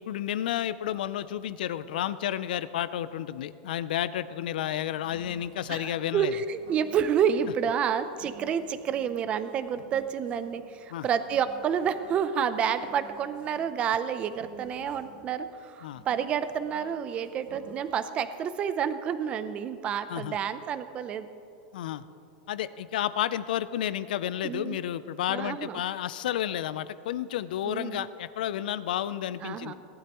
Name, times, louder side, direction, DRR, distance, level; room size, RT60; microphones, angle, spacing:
voice 1, 0.0-6.3 10.9-11.1 15.8-16.0 20.1-20.4 21.7-22.0 22.5-29.7, left 11 dB, 80° left, 15 dB, 0.5 m, -31 dB
sound 1, 4.7-17.9, right 5 dB, 85° right, 1.7 m, -54 dB
voice 2, 5.7-21.3 24.4-24.8 25.3-25.8 27.6-28.0 29.4-29.7, right 8 dB, 25° right, 11 dB, 0.5 m, -29 dB
18.5 x 12.0 x 3.0 m, 2.6 s
supercardioid pair, 155°, 5 cm